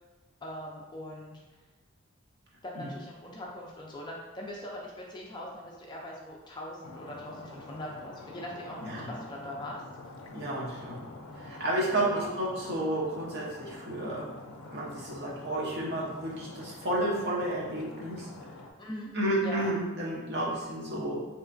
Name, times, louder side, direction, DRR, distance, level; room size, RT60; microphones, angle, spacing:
voice 1, 0.4-1.4 2.6-9.8 12.0-12.3 18.6-19.1 19.4-19.7, left 1 dB, 20° left, -2 dB, 0.3 m, -41 dB
Stream, 6.8-18.7, left 2 dB, 90° left, 0.4 m, -46 dB
voice 2, 8.8-9.1 10.3-11.0 11.3-14.3 14.6-18.3 19.1-21.3, right 1 dB, 50° right, -5 dB, 0.8 m, -31 dB
3.2 x 2.9 x 2.5 m, 1.2 s
head